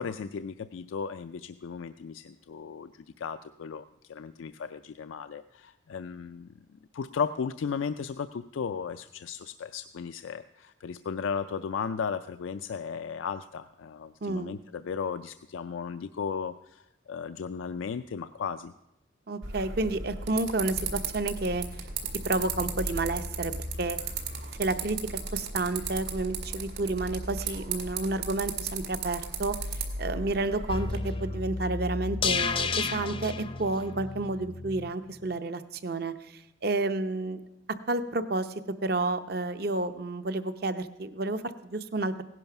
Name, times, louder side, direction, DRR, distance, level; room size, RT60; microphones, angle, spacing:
voice 1, 0.0-18.7, left 6 dB, 80° left, 10 dB, 0.4 m, -35 dB
voice 2, 14.2-14.6 19.3-21.7 22.2-23.5 23.8-24.0 24.6-37.4 37.9-42.2, right 2 dB, 50° right, 11 dB, 0.7 m, -30 dB
sound 1, 19.4-31.0, right 4 dB, 80° right, 2.1 m, -35 dB
sound 2, 30.7-34.9 35.2-35.3, left 4 dB, 25° left, 0.5 m, -32 dB
16.5 x 11.0 x 5.8 m, 0.92 s
head